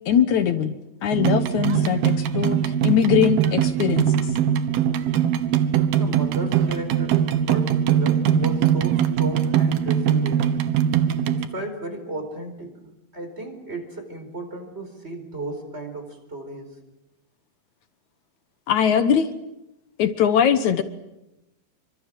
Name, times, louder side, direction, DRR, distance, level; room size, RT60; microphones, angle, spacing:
voice 1, 0.1-0.8 1.0-4.3 18.7-19.3 20.0-20.8, left 8 dB, 65° left, 10 dB, 2.3 m, -21 dB
sound 1, 1.1-11.5, right 9 dB, 85° right, 3.1 m, -21 dB
voice 2, 6.0-10.6 11.2-16.7, right 2 dB, 15° right, 6 dB, 4.5 m, -34 dB
27.5 x 25.0 x 7.6 m, 0.92 s
omnidirectional pair, 4.2 m